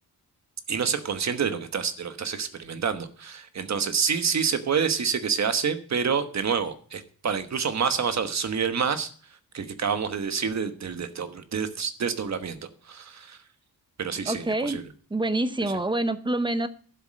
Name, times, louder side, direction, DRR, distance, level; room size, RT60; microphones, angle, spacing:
voice 1, 0.7-9.1 9.5-12.6 12.8-13.4 14.0-14.8 15.6-15.7, right 6 dB, 50° right, 9 dB, 1.2 m, -28 dB
voice 2, 14.3-14.8 15.1-16.7, right 2 dB, 15° right, 11 dB, 0.7 m, -26 dB
11.5 x 7.5 x 6.5 m, 0.43 s
wide cardioid pair, 165°, 36 cm